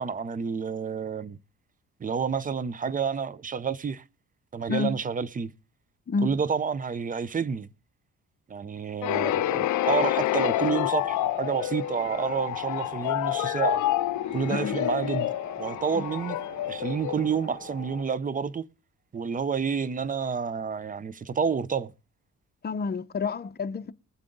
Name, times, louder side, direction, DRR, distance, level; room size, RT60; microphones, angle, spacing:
voice 1, 0.0-1.4 2.0-4.0 4.5-5.5 6.2-7.7 8.5-13.9 14.3-16.4 16.7-18.7 19.1-21.9, right 6 dB, 25° right, 0.6 m, -29 dB
sound 1, 9.0-17.8, left 14 dB, 75° left, 0.6 m, -28 dB
sound 2, 10.3-18.0, right 2 dB, 80° right, 4.0 m, -44 dB
voice 2, 22.6-23.9, left 4 dB, 35° left, 0.8 m, -29 dB
21.0 x 7.6 x 3.9 m
cardioid pair, 90°, 30 cm